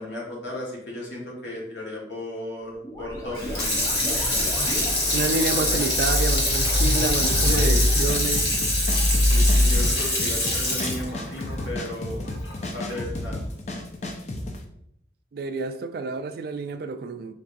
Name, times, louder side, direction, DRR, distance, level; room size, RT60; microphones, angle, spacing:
voice 1, 0.0-3.8 5.3-5.8 7.5-7.9 9.3-12.3 12.6-13.4, left 1 dB, 75° left, 1.5 m, -35 dB
sound 1, 2.8-9.7, left 1 dB, 20° left, 1.0 m, -25 dB
Water tap faucet / Sink (filling or washing), 3.3-12.6 13.0-13.1, left 1 dB, 60° left, 1.2 m, -25 dB
voice 2, 5.1-8.5 15.3-17.3, right 3 dB, 55° right, 0.3 m, -29 dB
sound 2, 7.3-14.6, left 1 dB, 35° left, 0.5 m, -33 dB
5.2 x 3.3 x 2.5 m
head